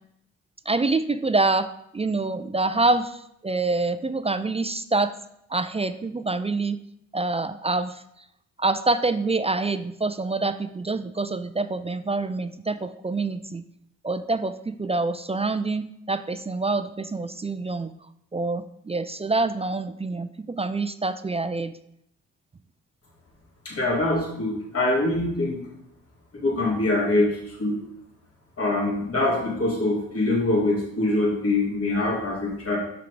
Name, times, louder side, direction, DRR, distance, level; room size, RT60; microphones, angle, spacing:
voice 1, 0.7-5.1 5.5-6.8 7.1-7.9 8.6-13.6 14.0-17.9 18.3-21.7, right 3 dB, 20° right, 11 dB, 0.4 m, -26 dB
voice 2, 23.6-25.6 26.3-27.8 28.6-32.8, left 2 dB, 40° left, -3 dB, 2.5 m, -24 dB
5.8 x 4.7 x 4.9 m, 0.76 s
supercardioid pair, 50°, 35 cm